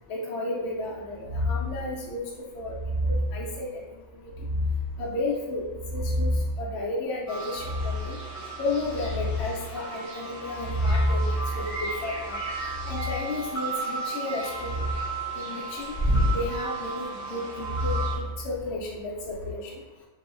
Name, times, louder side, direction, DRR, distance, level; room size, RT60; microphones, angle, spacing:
voice 1, 0.1-2.2 2.5-2.7 3.1-4.3 5.0-5.6 5.9-6.3 6.6-8.2 8.6-11.2 11.5-12.4 12.9-14.8 15.3-15.9 16.3-19.8, left 2 dB, 65° left, -4 dB, 0.8 m, -33 dB
sound 1, 1.2-1.8 2.6-3.4 4.3-5.0 5.6-6.6 7.5-8.2 8.6-9.5 10.5-13.2 14.5-15.1 15.9-16.4 17.6-18.8 19.2-19.5, left 1 dB, 75° right, 0.9 m, -28 dB
sound 2, 7.3-18.2, right 3 dB, 25° left, 0.4 m, -35 dB
2.9 x 2.1 x 2.4 m, 1.1 s
omnidirectional pair, 1.3 m